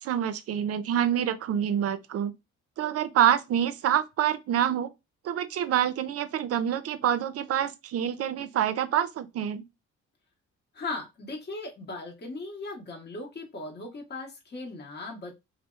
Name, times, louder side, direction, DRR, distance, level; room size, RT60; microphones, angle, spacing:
voice 1, 0.0-2.3 2.8-4.9 5.2-9.7, right 10 dB, 55° right, 0.4 m, -26 dB
voice 2, 10.7-15.4, left 2 dB, 35° left, 0.9 m, -38 dB
2.6 x 2.0 x 2.3 m
cardioid pair, 90°, 30 cm